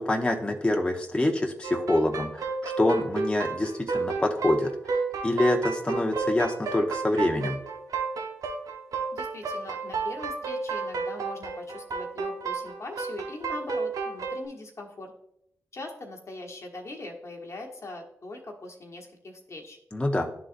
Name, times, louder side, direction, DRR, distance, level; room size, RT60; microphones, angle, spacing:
voice 1, 0.0-4.7 5.2-7.6 19.9-20.3, left 1 dB, 15° left, 1 dB, 0.8 m, -26 dB
sound 1, 1.6-14.4, right 4 dB, 75° right, 0.9 m, -31 dB
voice 2, 9.1-15.1 15.7-19.8, left 2 dB, 50° left, 1 dB, 1.2 m, -41 dB
10.5 x 3.9 x 2.5 m, 0.77 s
supercardioid pair, 45°, 6 cm